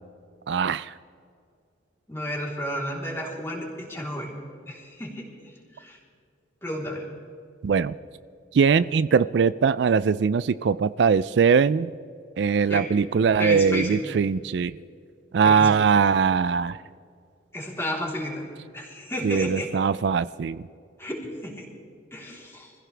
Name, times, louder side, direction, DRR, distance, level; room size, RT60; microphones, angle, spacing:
voice 1, 0.5-0.9 7.6-8.0 8.5-11.9 12.4-14.8 15.3-16.8 19.2-20.6, right 6 dB, 65° right, 16 dB, 0.4 m, -21 dB
voice 2, 2.1-4.3 4.7-6.0 6.6-7.0 12.7-12.9 13.4-14.0 15.4-15.9 17.5-18.4 18.7-19.7 21.0-21.7 22.1-22.7, equal, 15° left, -3 dB, 3.6 m, -32 dB
25.5 x 16.0 x 3.4 m, 2.3 s
head